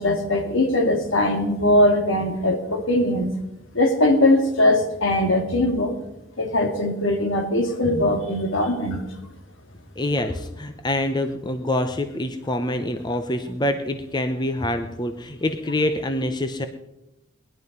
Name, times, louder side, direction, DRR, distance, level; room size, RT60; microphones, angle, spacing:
voice 1, 0.0-3.3 3.7-6.0 6.4-9.1, left 1 dB, 70° left, 5 dB, 2.5 m, -20 dB
voice 2, 10.0-16.7, left 1 dB, 20° left, 7 dB, 0.8 m, -26 dB
20.0 x 11.0 x 5.4 m, 0.92 s
head